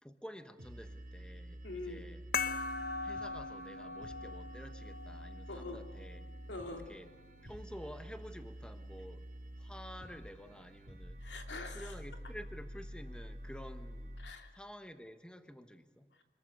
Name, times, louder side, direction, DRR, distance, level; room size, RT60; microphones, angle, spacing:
voice 1, 0.0-2.3 3.0-6.3 6.6-7.1 7.4-9.3 9.6-11.2 11.7-14.1 14.5-16.1, equal, 5° left, 8 dB, 1.2 m, -50 dB
sound 1, 0.6-14.3, equal, 50° right, 2.6 m, -48 dB
voice 2, 1.6-2.0 5.5-5.8 6.5-6.8 11.2-11.9 14.2-14.5, left 3 dB, 90° left, 4 dB, 2.8 m, -44 dB
sound 2, 2.3-7.4, left 4 dB, 55° left, 1.1 m, -41 dB
25.5 x 21.5 x 6.7 m, 1.3 s
head